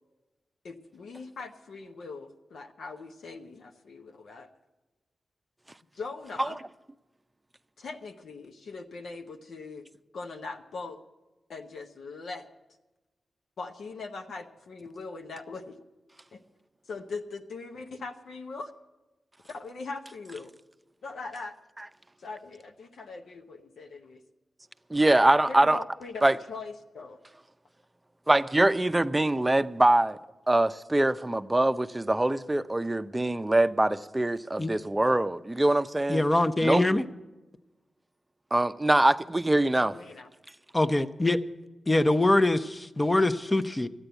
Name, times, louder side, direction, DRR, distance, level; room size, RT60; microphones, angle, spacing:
voice 1, 0.6-4.5 5.9-6.6 7.8-9.9 10.1-11.0 11.5-12.4 13.6-15.8 16.3-16.4 16.9-18.7 19.5-20.5 21.0-21.5 22.2-24.2 25.4-27.2 39.9-40.3, left 3 dB, 80° left, 0.9 m, -41 dB
voice 2, 24.9-25.8 26.2-26.3 28.3-30.2 30.5-36.2 36.6-36.8 38.5-40.0, right 1 dB, 20° right, 0.6 m, -23 dB
voice 3, 36.1-37.0 40.7-41.4 41.9-43.9, left 2 dB, 20° left, 0.7 m, -24 dB
13.0 x 9.0 x 8.0 m
cardioid pair, 60°, 0 cm